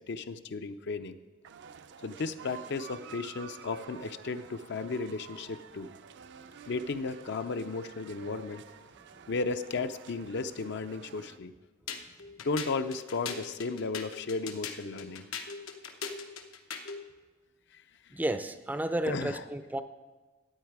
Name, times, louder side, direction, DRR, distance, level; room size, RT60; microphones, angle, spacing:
voice 1, 0.1-1.2 2.0-5.9 6.7-8.6 9.3-11.5 12.4-15.2 19.1-19.4, left 4 dB, 60° left, 10 dB, 0.5 m, -34 dB
sound 1, 1.4-11.4, right 6 dB, 60° right, 0.5 m, -50 dB
sound 2, 11.9-17.0, left 6 dB, 90° left, 1.0 m, -40 dB
voice 2, 18.1-19.8, right 1 dB, 10° right, 10 dB, 0.4 m, -32 dB
13.5 x 8.7 x 4.7 m, 1.3 s
head